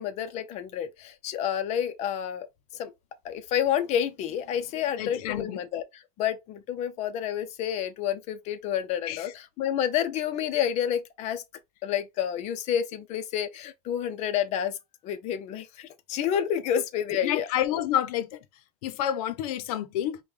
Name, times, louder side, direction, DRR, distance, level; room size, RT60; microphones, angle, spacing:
voice 1, 0.0-2.5 2.8-2.9 3.2-5.8 6.2-11.4 11.8-14.8 15.0-17.5, left 9 dB, 35° left, 0.6 m, -29 dB
voice 2, 5.0-5.6 9.1-9.3 17.2-18.4 18.8-20.2, left 11 dB, 80° left, 0.7 m, -29 dB
5.3 x 2.3 x 3.2 m
supercardioid pair, 160°, 19 cm